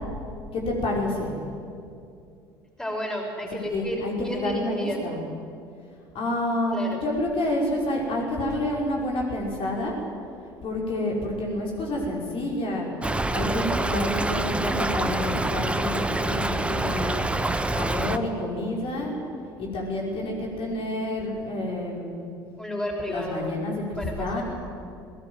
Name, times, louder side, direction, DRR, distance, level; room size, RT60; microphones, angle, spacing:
voice 1, 0.5-1.3 3.4-5.3 6.1-9.9 10.6-12.9 13.3-17.2 17.7-19.1 19.6-22.2 23.0-24.4, left 1 dB, 50° left, -2 dB, 5.5 m, -29 dB
voice 2, 2.8-5.0 6.7-7.0 22.6-23.5 24.0-24.4, equal, 5° left, 1 dB, 6.2 m, -32 dB
Stream / Trickle dribble, 13.0-18.2, right 2 dB, 10° right, 1.2 m, -26 dB
21.5 x 18.5 x 9.2 m, 2.5 s
hypercardioid pair, 65°, 12 cm